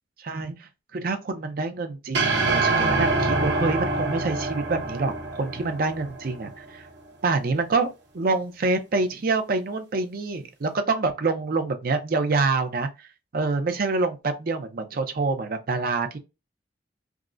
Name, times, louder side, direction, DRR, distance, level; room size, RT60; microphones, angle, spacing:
voice 1, 0.2-6.9 7.2-7.9 8.1-16.2, right 3 dB, 55° right, 0.5 m, -26 dB
sound 1, 2.1-6.5, right 3 dB, 75° right, 0.9 m, -25 dB
3.5 x 2.0 x 2.4 m
head